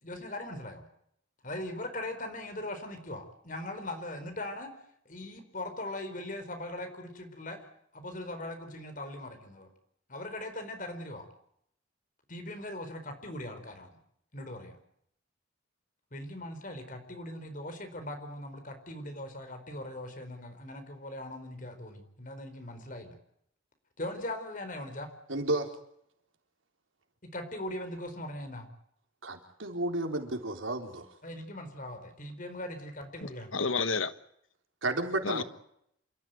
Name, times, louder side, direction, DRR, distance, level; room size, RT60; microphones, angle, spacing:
voice 1, 0.0-0.8 1.4-4.7 5.0-7.6 7.9-9.7 10.1-11.3 12.3-13.9 14.3-14.8 16.1-23.1 24.0-25.1 27.2-28.7 31.2-33.5, left 1 dB, 40° left, 4.5 m, -40 dB
voice 2, 25.3-25.7 29.2-31.1 34.8-35.4, right 2 dB, 80° right, 3.8 m, -32 dB
voice 3, 33.2-34.1 35.2-35.4, left 4 dB, 85° left, 1.3 m, -30 dB
28.0 x 14.0 x 9.3 m
head